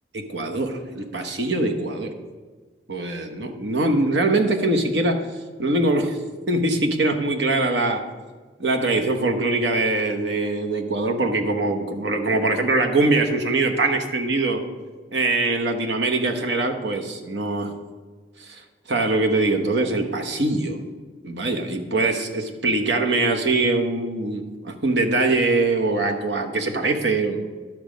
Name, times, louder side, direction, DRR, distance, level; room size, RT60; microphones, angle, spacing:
voice 1, 0.1-2.1 2.9-5.3 5.6-6.2 6.5-8.0 8.6-14.6 15.1-17.7 18.4-18.6 18.9-20.8 21.2-27.4, right 2 dB, 85° right, 4 dB, 1.1 m, -22 dB
12.0 x 6.1 x 5.2 m, 1.4 s
head